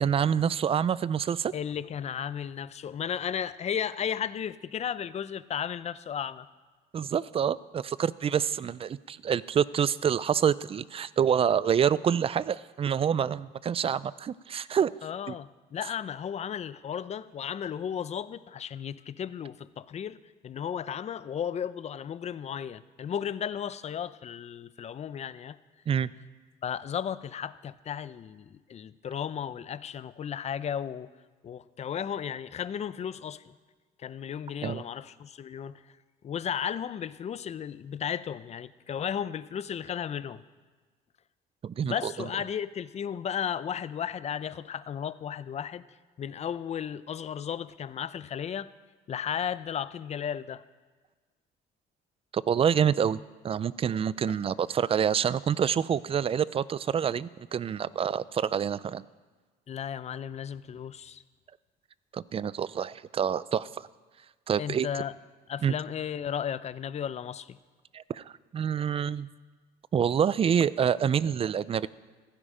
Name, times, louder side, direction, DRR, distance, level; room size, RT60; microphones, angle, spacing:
voice 1, 0.0-1.5 6.9-15.0 15.3-15.4 25.9-26.1 34.6-34.8 41.6-42.3 52.3-59.0 62.1-63.7 64.5-64.9 65.6-65.7 67.9-68.2 68.5-69.3 69.9-71.9, right 8 dB, 35° right, 19 dB, 0.4 m, -27 dB
voice 2, 1.5-6.5 15.0-20.2 20.4-25.6 26.6-31.1 31.4-33.5 34.0-35.8 36.2-40.4 41.8-45.8 46.2-48.7 49.1-50.6 59.7-61.2 64.6-65.1 65.5-67.6, left 8 dB, 40° left, 16 dB, 0.6 m, -34 dB
15.5 x 15.5 x 5.0 m, 1.4 s
cardioid pair, 110°, 17 cm